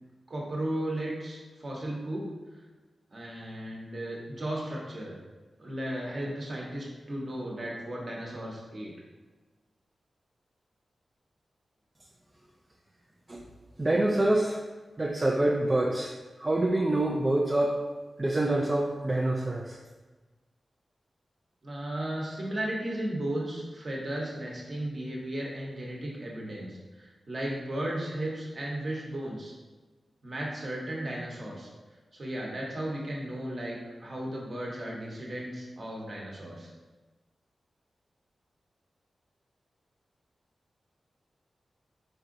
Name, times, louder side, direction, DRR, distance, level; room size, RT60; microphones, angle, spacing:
voice 1, 0.3-2.3 3.1-5.2 5.6-8.9 21.6-29.5 30.2-31.7 32.1-36.7, right 1 dB, 45° right, -3 dB, 1.0 m, -35 dB
voice 2, 13.8-14.6 15.0-16.1 16.4-17.8 18.2-19.8, right 1 dB, 25° right, -1 dB, 0.3 m, -26 dB
4.3 x 3.7 x 2.6 m, 1.2 s
wide cardioid pair, 115°, 0 cm